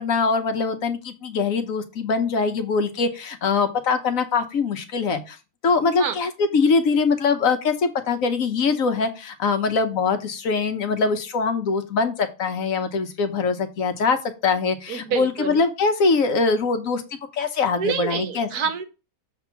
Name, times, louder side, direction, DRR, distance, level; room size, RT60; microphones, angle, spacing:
voice 1, 0.0-5.4 5.6-14.2 14.4-17.0 17.3-18.5, left 4 dB, 65° left, 8 dB, 1.3 m, -23 dB
voice 2, 14.9-15.6 17.8-18.8, right 7 dB, 85° right, 9 dB, 1.5 m, -27 dB
7.0 x 3.5 x 5.7 m, 0.30 s
omnidirectional pair, 1.6 m